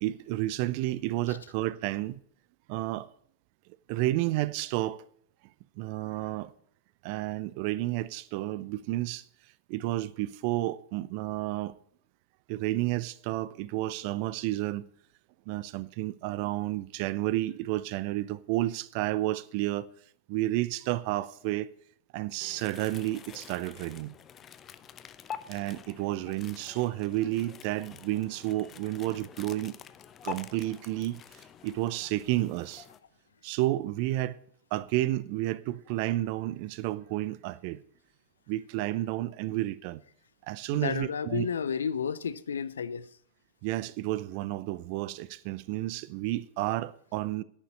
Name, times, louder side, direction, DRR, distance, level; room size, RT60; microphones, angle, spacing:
voice 1, 0.0-2.2 2.7-3.1 3.9-5.0 5.8-6.5 7.0-9.2 9.7-11.8 12.5-14.9 15.5-19.9 20.3-21.7 22.1-24.2 25.5-29.8 30.2-32.9 33.4-34.4 34.7-37.8 38.5-40.0 40.5-41.5 43.6-47.4, right 16 dB, 45° right, 0.5 m, -31 dB
sound 1, 22.4-33.0, left 8 dB, 25° left, 0.7 m, -47 dB
voice 2, 40.7-43.1, left 7 dB, 70° left, 0.6 m, -32 dB
10.5 x 6.9 x 8.4 m
figure-of-eight pair, 90°, 0 cm